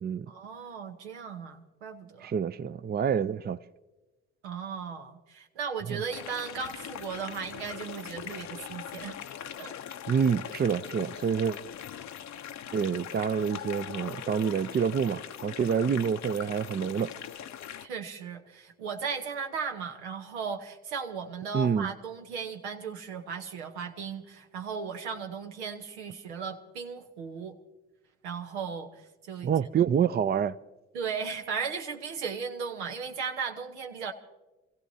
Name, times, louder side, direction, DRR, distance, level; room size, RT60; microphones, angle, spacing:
voice 1, 0.3-2.3 4.4-9.2 9.6-9.7 17.8-27.6 28.2-29.5 30.9-34.1, right 6 dB, 90° right, 0.9 m, -36 dB
voice 2, 2.2-3.6 5.9-6.0 10.1-11.6 12.7-17.2 21.5-21.9 29.4-30.6, right 7 dB, 30° right, 0.5 m, -27 dB
sound 1, 6.1-17.9, left 9 dB, 55° left, 0.7 m, -41 dB
29.0 x 15.5 x 2.7 m
hypercardioid pair, 45°, 33 cm